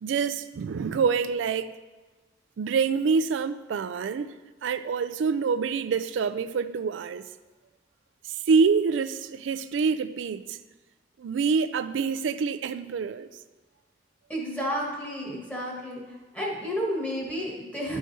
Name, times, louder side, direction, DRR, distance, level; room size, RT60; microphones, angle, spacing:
voice 1, 0.0-1.7 2.6-4.3 4.6-7.3 8.2-10.6 11.2-13.3, right 5 dB, 90° right, 0.4 m, -26 dB
voice 2, 14.3-16.0 16.3-18.0, equal, 10° left, 1.5 m, -31 dB
11.5 x 4.8 x 4.1 m
head